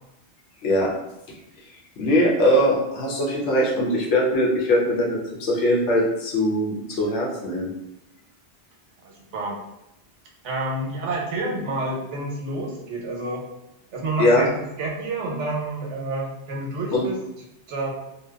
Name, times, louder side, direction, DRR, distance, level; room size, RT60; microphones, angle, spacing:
voice 1, 2.0-7.7 14.2-14.4 16.9-17.1, left 1 dB, 85° left, -3 dB, 0.9 m, -21 dB
voice 2, 9.0-9.6 10.4-13.4 13.9-14.5 14.8-17.2 17.7-17.9, right 2 dB, 85° right, -1 dB, 0.9 m, -29 dB
2.7 x 2.2 x 2.2 m, 0.86 s
omnidirectional pair, 1.2 m